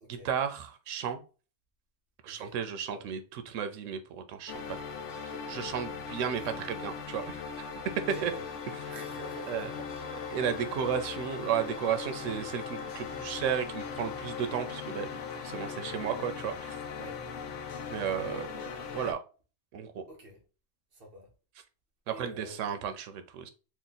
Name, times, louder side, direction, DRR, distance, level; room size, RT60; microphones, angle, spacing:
voice 1, 0.1-1.2 2.2-4.8 5.2-7.7 8.1-8.3 9.5-9.7 10.3-16.8 17.9-18.5 18.9-19.2 19.7-20.0 22.1-23.5, right 8 dB, 85° right, 0.9 m, -34 dB
voice 2, 2.2-2.6 2.9-3.0 6.4-6.5 8.0-8.4 8.9-9.8 16.9-17.2 18.0-18.3 20.1-20.4 20.9-21.3 22.1-22.6, right 1 dB, 55° right, 1.0 m, -47 dB
sound 1, 4.5-19.1, left 6 dB, 80° left, 0.9 m, -39 dB
3.0 x 2.1 x 3.9 m
omnidirectional pair, 1.3 m